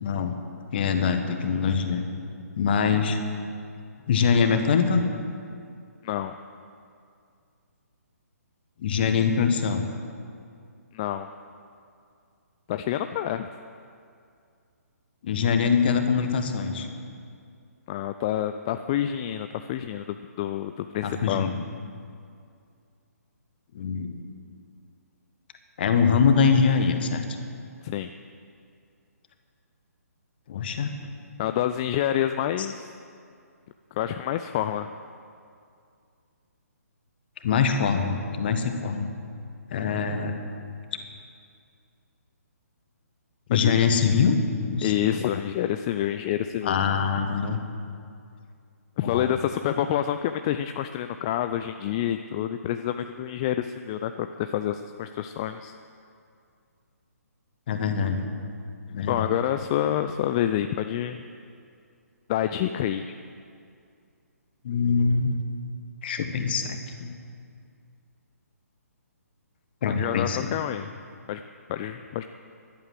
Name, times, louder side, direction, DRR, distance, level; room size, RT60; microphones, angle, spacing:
voice 1, 0.0-0.3 0.7-2.0 2.6-3.2 4.1-5.0 8.8-9.8 15.2-16.9 21.0-21.5 23.7-24.2 25.8-27.2 30.5-30.9 37.4-39.1 39.7-40.3 43.5-44.4 44.7-44.9 46.6-47.6 49.0-49.4 57.7-58.3 58.9-59.3 64.6-65.4 66.0-67.1 69.8-70.5, left 6 dB, 35° left, 7 dB, 1.5 m, -23 dB
voice 2, 6.0-6.4 10.9-11.3 12.7-13.5 17.9-21.5 27.8-28.1 31.4-32.8 34.0-34.9 43.5-43.8 44.8-46.8 49.0-55.7 59.1-61.2 62.3-63.1 70.0-70.9 71.3-71.4 71.7-72.2, left 11 dB, 20° left, 9 dB, 0.3 m, -28 dB
14.5 x 11.5 x 7.8 m, 2.4 s
figure-of-eight pair, 135°, 9 cm